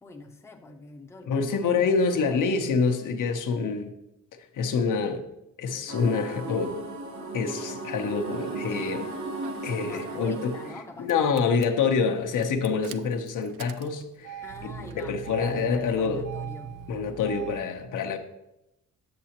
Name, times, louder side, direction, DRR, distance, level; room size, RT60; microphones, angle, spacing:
voice 1, 0.0-2.4 7.9-8.0 9.8-12.2 14.4-16.7, left 2 dB, 10° left, 2 dB, 0.6 m, -45 dB
voice 2, 1.3-3.9 4.5-5.2 5.6-6.8 7.3-9.1 9.6-10.5 11.0-16.2 16.9-18.2, left 5 dB, 70° left, 6 dB, 0.8 m, -26 dB
sound 1, 5.9-10.7, right 2 dB, 60° right, 2.0 m, -36 dB
Engine starting, 8.1-8.7 9.4-10.8 11.1-11.7 12.3-17.7, right 7 dB, 75° right, 0.5 m, -41 dB
7.6 x 6.8 x 2.9 m, 0.88 s
cardioid pair, 120°, 32 cm